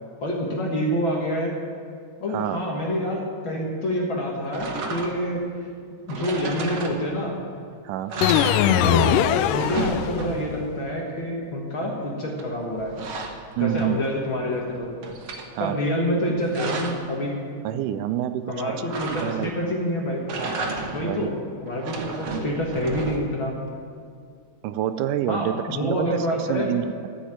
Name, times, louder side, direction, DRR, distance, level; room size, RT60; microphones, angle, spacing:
voice 1, 0.2-1.5 2.2-5.4 6.1-7.4 8.7-9.1 9.5-13.0 13.6-14.9 15.6-17.4 18.5-20.3 20.9-23.6 25.3-26.7, equal, 45° left, -1 dB, 1.9 m, -27 dB
sound 1, 4.5-5.4 6.1-7.4 7.7-7.8 8.1-9.2 9.4-10.7 12.4-14.2 14.6-15.5 16.2-17.1 18.9-19.7 20.2-21.2 21.7-23.4, right 3 dB, 60° right, 1.5 m, -33 dB
sound 2, 8.2-10.5, left 10 dB, 90° left, 2.2 m, -21 dB
voice 2, 13.6-14.0 15.5-15.8 17.6-18.7 19.2-19.5 21.0-21.3 24.6-27.1, right 11 dB, 80° right, 11 dB, 2.0 m, -27 dB
14.5 x 6.4 x 8.9 m, 2.2 s
omnidirectional pair, 3.7 m